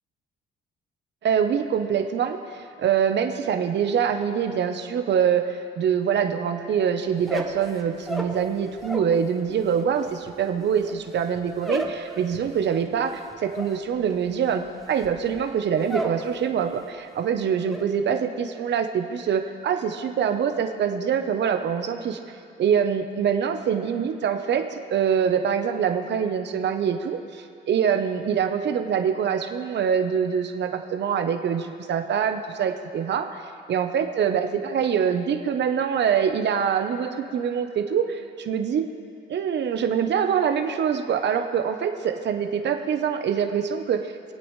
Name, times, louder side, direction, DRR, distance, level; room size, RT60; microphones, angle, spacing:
voice 1, 1.2-22.2 22.6-33.4 33.7-38.8 39.3-44.1, right 7 dB, 60° right, 6 dB, 0.9 m, -24 dB
sound 1, 7.1-9.2 9.5-16.3 16.6-17.1 17.3-17.9, right 1 dB, ahead, 1.3 m, -34 dB
25.0 x 8.5 x 3.3 m, 2.4 s
cardioid pair, 90°, 20 cm